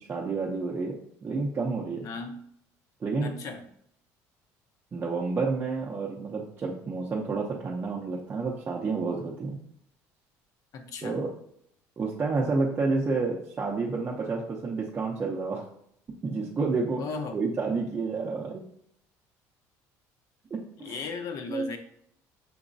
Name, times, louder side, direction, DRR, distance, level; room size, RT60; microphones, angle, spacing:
voice 1, 0.1-2.1 3.0-3.3 4.9-9.6 11.0-11.3 12.0-15.6 16.2-17.0 17.3-18.6 20.5-21.0 21.5-21.7, right 4 dB, 25° right, -3 dB, 0.5 m, -30 dB
voice 2, 2.0-2.4 3.2-3.6 10.7-11.2 17.0-17.4 20.8-21.8, left 4 dB, 55° left, 7 dB, 0.7 m, -36 dB
6.0 x 2.9 x 2.6 m, 0.70 s
cardioid pair, 125°, 7 cm